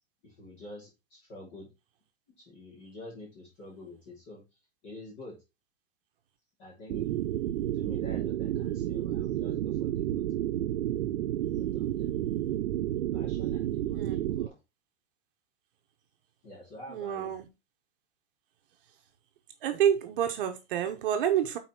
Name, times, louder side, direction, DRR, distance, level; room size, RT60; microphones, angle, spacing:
voice 1, 0.2-1.7 2.4-4.4 4.8-5.4 6.6-7.2 7.7-10.3 11.5-12.2 13.1-14.6 16.4-17.3, left 1 dB, 35° left, 3.2 m, -47 dB
sound 1, 6.9-14.5, right 12 dB, 85° right, 0.7 m, -31 dB
voice 2, 13.9-14.4 16.9-17.5 19.6-21.6, right 9 dB, 50° right, 1.0 m, -28 dB
5.8 x 4.3 x 5.8 m
supercardioid pair, 175°, 33 cm